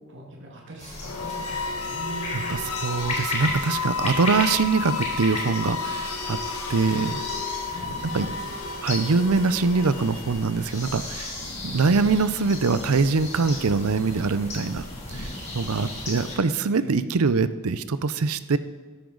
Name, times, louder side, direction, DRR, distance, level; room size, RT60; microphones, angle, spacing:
voice 1, 0.1-2.4 7.7-8.2 9.5-9.6 16.7-17.2, right 2 dB, 60° right, -2 dB, 2.1 m, -41 dB
sound 1, 0.8-16.4, left 2 dB, 35° left, 3.3 m, -35 dB
sound 2, 0.9-10.9, left 4 dB, 90° left, 1.4 m, -32 dB
voice 2, 2.3-6.4 6.7-7.2 7.7-8.3 8.8-11.3 11.6-14.8 15.1-15.3 15.5-18.6, right 4 dB, 85° right, 13 dB, 0.6 m, -23 dB
13.5 x 12.5 x 3.9 m, 1.4 s
head